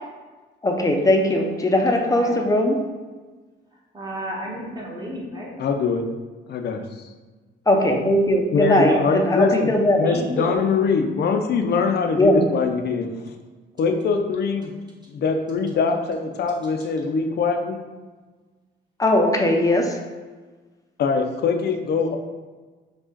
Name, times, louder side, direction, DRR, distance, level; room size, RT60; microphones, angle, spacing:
voice 1, 0.6-2.9 7.7-10.1 12.2-12.4 19.0-20.0, left 1 dB, 15° left, 3 dB, 0.6 m, -19 dB
voice 2, 3.9-5.5 7.8-7.9 8.9-9.0 10.0-10.7, equal, 20° right, -4 dB, 1.4 m, -32 dB
voice 3, 5.6-6.0 6.5-7.1 8.5-13.1 13.8-14.7 15.1-17.8 21.0-22.2, left 5 dB, 55° left, 5 dB, 0.5 m, -23 dB
5.0 x 2.4 x 3.8 m, 1.3 s
cardioid pair, 90°, 20 cm